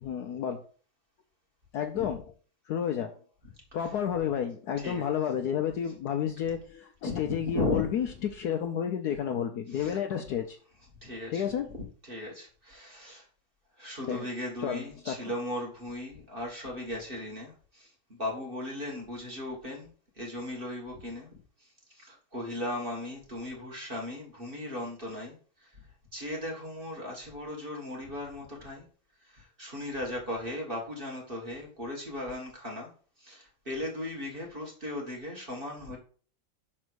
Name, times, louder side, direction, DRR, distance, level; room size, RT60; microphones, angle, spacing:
voice 1, 0.0-0.6 1.7-2.2 2.7-3.1 3.7-10.6 11.3-11.7 14.1-14.3 14.6-15.2, left 9 dB, 65° left, 1.1 m, -31 dB
voice 2, 7.1-7.9 9.7-10.0 11.0-11.5 12.0-13.2 13.8-19.9 20.2-21.3 21.9-25.4 25.6-25.7 26.1-28.9 29.3-32.9 33.2-36.0, left 1 dB, 30° right, 2.1 m, -37 dB
6.0 x 4.3 x 6.2 m
omnidirectional pair, 2.1 m